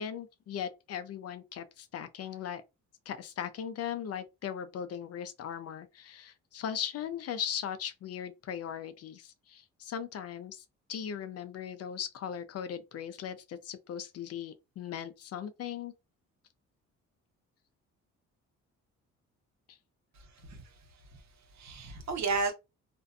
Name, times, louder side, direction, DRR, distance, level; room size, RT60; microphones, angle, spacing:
voice 1, 0.0-2.6 3.1-15.9, left 9 dB, 55° left, 0.5 m, -38 dB
voice 2, 20.1-21.2 21.5-22.5, right 4 dB, 65° right, 1.0 m, -34 dB
2.5 x 2.2 x 2.5 m
cardioid pair, 90°, 30 cm